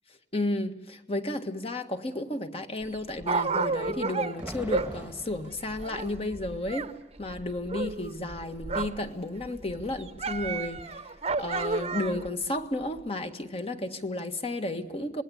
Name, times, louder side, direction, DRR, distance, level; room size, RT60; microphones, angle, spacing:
voice 1, 0.3-6.9 7.2-10.9 11.4-15.2, left 1 dB, 35° left, 1.7 m, -32 dB
Dog, 2.8-6.9 7.2-9.1 9.4-12.3 13.0-13.1, right 4 dB, 35° right, 1.0 m, -32 dB
sound 1, 3.8-5.6, right 1 dB, 5° right, 1.4 m, -42 dB
27.0 x 20.5 x 9.9 m
head